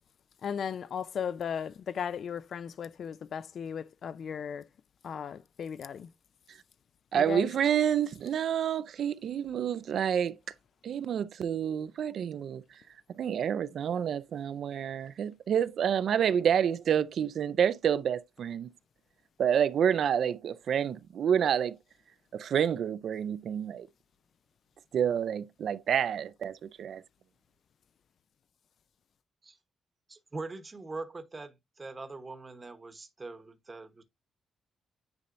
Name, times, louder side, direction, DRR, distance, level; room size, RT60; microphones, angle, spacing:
voice 1, 0.4-4.7 5.0-6.1 7.1-7.5, left 7 dB, 50° left, 0.4 m, -36 dB
voice 2, 7.1-10.3 10.8-12.6 13.2-18.7 19.4-21.8 22.3-23.9 24.9-27.0, right 8 dB, 55° right, 0.4 m, -28 dB
voice 3, 30.1-34.0, right 3 dB, 20° right, 1.0 m, -42 dB
9.6 x 4.3 x 2.5 m
cardioid pair, 160°, 0 cm